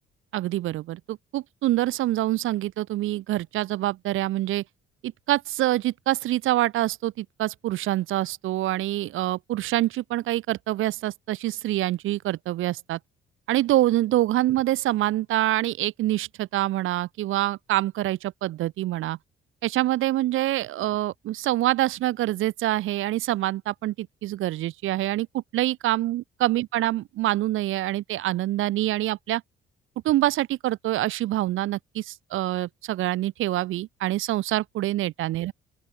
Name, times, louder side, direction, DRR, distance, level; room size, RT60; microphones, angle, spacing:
voice 1, 0.3-4.6 5.3-13.0 13.5-19.2 19.6-29.4 30.0-35.5, right 15 dB, 90° right, 7.0 m, -26 dB
open air
cardioid pair, 90°, 20 cm